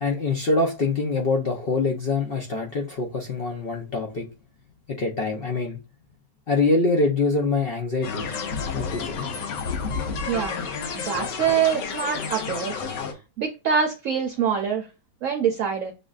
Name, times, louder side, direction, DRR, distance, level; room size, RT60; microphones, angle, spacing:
voice 1, 0.0-4.2 4.9-5.8 6.5-8.3 8.7-9.3, left 3 dB, 60° left, 0.6 m, -24 dB
sound 1, 8.0-13.1, left 5 dB, 85° left, 1.4 m, -30 dB
voice 2, 10.3-10.7 10.9-12.8 13.4-14.9 15.2-15.9, right 7 dB, 65° right, 0.9 m, -25 dB
7.0 x 2.6 x 2.4 m
omnidirectional pair, 1.8 m